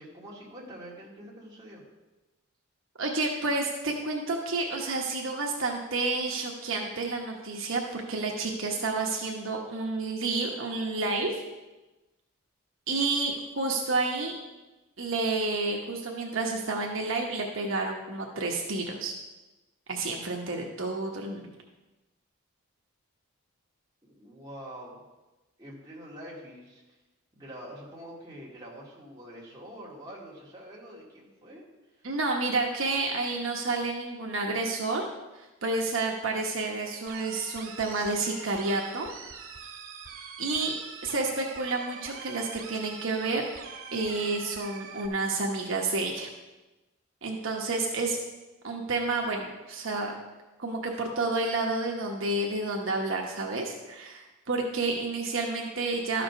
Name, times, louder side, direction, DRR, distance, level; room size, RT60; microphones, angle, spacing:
voice 1, 0.0-1.8 24.0-25.0 25.6-26.8 27.4-32.1, equal, 20° right, -5 dB, 2.2 m, -45 dB
voice 2, 3.0-11.4 12.9-14.3 15.0-19.1 19.9-21.5 32.0-35.1 35.3-39.1 40.4-40.7 41.0-43.4 43.9-46.3 47.2-48.2 48.6-50.1 50.6-56.2, right 3 dB, 65° right, 0 dB, 1.0 m, -30 dB
sound 1, 37.1-45.1, right 6 dB, 80° right, 2.1 m, -44 dB
12.5 x 5.1 x 5.9 m, 1.1 s
head